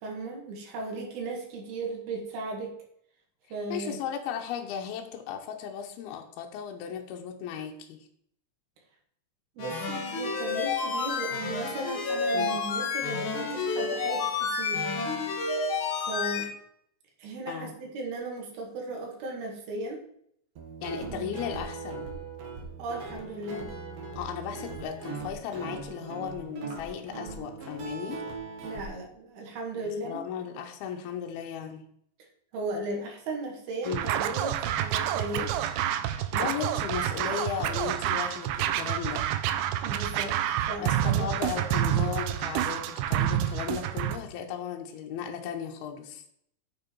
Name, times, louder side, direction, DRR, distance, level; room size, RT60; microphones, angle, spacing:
voice 1, 0.0-2.7 3.5-4.0 9.6-14.9 16.0-16.5 17.2-20.0 21.0-21.3 22.8-23.7 28.6-30.2 32.5-35.5 39.8-41.3, right 2 dB, 75° right, 0 dB, 3.9 m, -36 dB
voice 2, 3.7-8.1 12.3-12.6 17.5-17.7 20.8-22.1 24.2-28.2 29.7-31.8 33.9-34.1 36.1-39.3 40.8-46.2, left 8 dB, 80° left, 3 dB, 2.7 m, -36 dB
sound 1, 9.6-16.4, left 4 dB, 55° left, 1.4 m, -30 dB
Guitar, 20.6-28.8, right 4 dB, 55° right, 2.0 m, -40 dB
Scratching (performance technique), 33.8-44.2, right 11 dB, 90° right, 2.8 m, -28 dB
8.9 x 7.4 x 4.6 m, 0.69 s
omnidirectional pair, 4.5 m